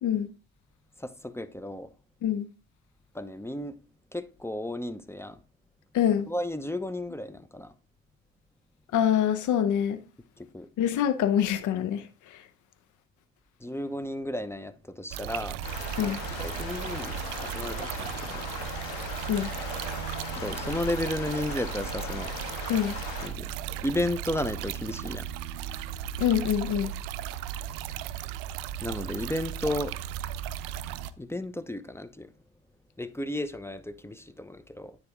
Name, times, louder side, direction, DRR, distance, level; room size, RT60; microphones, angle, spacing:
voice 1, 1.0-1.9 3.1-3.8 4.1-5.4 6.3-7.7 10.4-10.7 13.6-15.6 16.0-18.3 20.3-22.3 23.2-23.6 23.8-25.3 28.8-29.9 31.2-32.3 33.0-35.0, left 1 dB, 5° left, 0.6 m, -33 dB
voice 2, 5.9-6.3 8.9-10.0 10.8-12.4 16.0-16.2 19.3-19.5 22.7-22.9 26.2-26.9, left 9 dB, 60° left, 0.8 m, -25 dB
sound 1, 15.1-31.1, right 10 dB, 80° right, 0.5 m, -36 dB
sound 2, 15.6-23.3, left 5 dB, 80° left, 2.0 m, -38 dB
9.5 x 4.1 x 3.6 m
hypercardioid pair, 60°, 34 cm